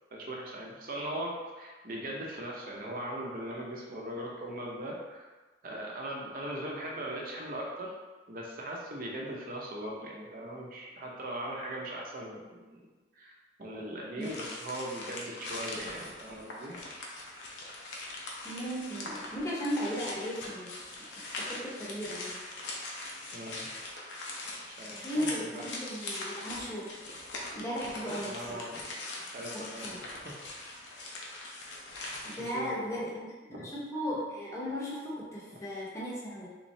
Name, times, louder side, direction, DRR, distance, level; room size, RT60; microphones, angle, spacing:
voice 1, 0.1-5.3 5.6-7.9 8.3-12.8 13.1-16.8 23.3-23.7 24.7-25.7 28.2-28.8 29.3-30.7 32.4-33.0 33.5-33.7, right 1 dB, 50° right, -2 dB, 0.7 m, -40 dB
sound 1, 14.2-32.5, left 2 dB, 85° left, 0.7 m, -41 dB
voice 2, 18.4-22.4 25.0-27.0 27.5-28.7 29.5-30.0 32.2-33.3 33.7-36.6, equal, 15° left, -6 dB, 0.8 m, -36 dB
3.6 x 3.1 x 2.7 m, 1.3 s
head